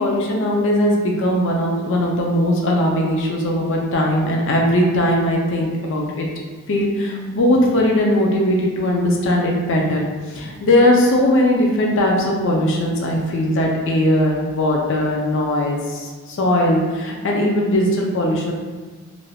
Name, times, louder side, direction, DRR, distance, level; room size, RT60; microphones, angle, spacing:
voice 1, 0.0-6.3 6.7-18.5, left 1 dB, 60° left, -1 dB, 0.4 m, -19 dB
2.5 x 2.2 x 3.3 m, 1.4 s
head